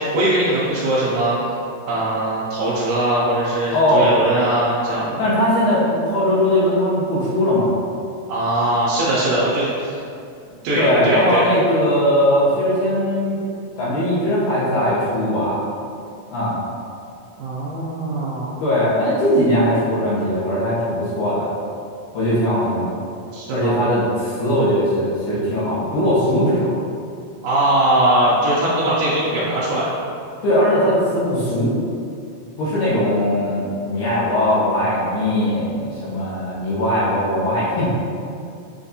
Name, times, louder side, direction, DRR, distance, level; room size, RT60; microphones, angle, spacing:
voice 1, 0.0-1.4 1.9-5.2 8.3-10.0 10.6-11.5 17.4-18.5 23.3-23.9 27.4-29.9, right 1 dB, 80° right, -8 dB, 1.9 m, -20 dB
voice 2, 3.7-4.1 5.2-7.7 10.8-13.4 13.8-15.6 16.3-16.6 18.6-21.5 22.1-22.9 23.5-26.7 30.4-31.7 32.6-37.9, left 1 dB, 75° left, -8 dB, 2.3 m, -19 dB
7.0 x 2.5 x 2.6 m, 2.4 s
omnidirectional pair, 4.3 m